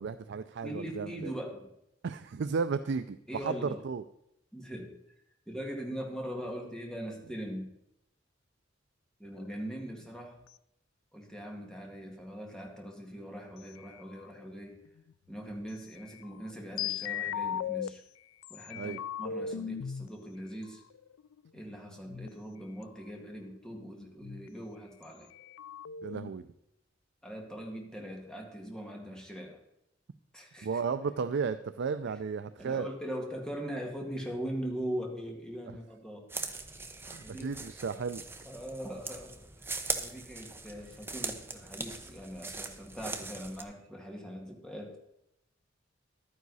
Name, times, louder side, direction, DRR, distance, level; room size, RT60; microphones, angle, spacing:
voice 1, 0.0-1.1 2.0-3.2 3.4-4.0 18.7-19.0 26.0-26.4 30.6-32.9 37.0-38.2, right 5 dB, 60° right, 11 dB, 0.4 m, -33 dB
voice 2, 0.6-1.7 3.3-3.8 4.5-5.0 5.5-7.7 9.2-10.4 11.1-14.8 15.3-18.0 18.5-20.8 21.5-25.3 27.2-29.6 30.3-30.8 32.6-36.3 37.2-37.6 38.5-45.0, equal, 5° left, 1 dB, 1.9 m, -41 dB
sound 1, 9.4-10.1 13.8-15.1 16.0-17.9 18.4-20.1 20.9-22.3 22.8-22.9 23.1-24.5 25.0-25.1 25.3-26.3, left 8 dB, 85° left, 0.3 m, -38 dB
sound 2, 36.3-43.6, right 3 dB, 10° right, 0.8 m, -40 dB
12.0 x 9.5 x 4.1 m, 0.80 s
head